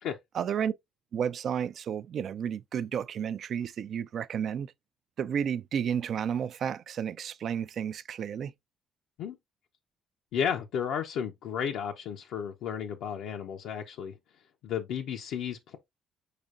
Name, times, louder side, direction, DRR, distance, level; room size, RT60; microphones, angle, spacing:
voice 1, 0.3-0.7 1.1-4.7 5.2-8.5, right 8 dB, 60° right, 0.4 m, -32 dB
voice 2, 10.3-14.1 14.6-15.8, left 8 dB, 80° left, 0.6 m, -33 dB
5.0 x 4.3 x 2.4 m
cardioid pair, 90°, 0 cm